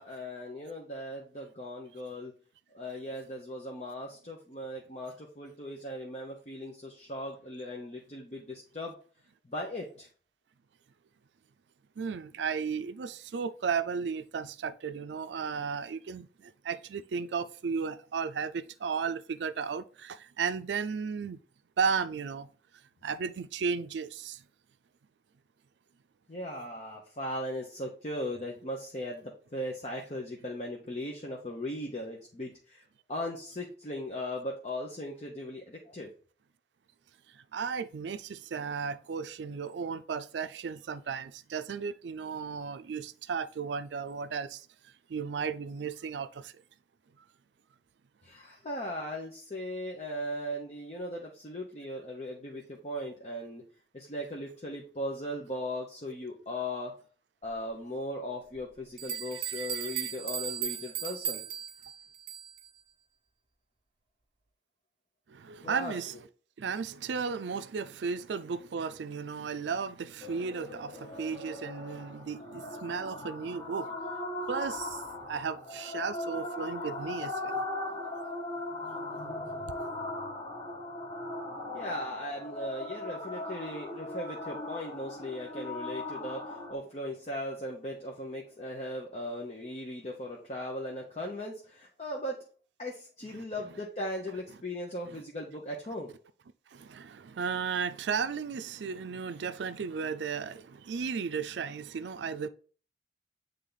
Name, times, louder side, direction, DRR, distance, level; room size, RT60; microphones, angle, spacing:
voice 1, 0.0-2.3 2.7-9.0 9.4-10.1 26.3-32.8 33.1-36.1 48.2-53.6 53.9-56.9 57.4-61.4 65.6-65.9 81.7-92.4 92.8-96.1, left 1 dB, 40° left, 0.9 m, -38 dB
voice 2, 12.0-21.4 21.8-22.5 23.0-24.4 37.3-46.5 47.2-47.3 59.1-60.1 65.3-66.2 66.6-74.0 74.5-77.6 95.1-95.2 96.7-102.5, right 6 dB, 85° right, 0.4 m, -35 dB
sound 1, 58.5-58.6 59.0-62.7, right 8 dB, 30° right, 1.1 m, -36 dB
sound 2, 70.2-86.7, left 2 dB, 25° left, 1.3 m, -39 dB
8.2 x 3.4 x 3.9 m
head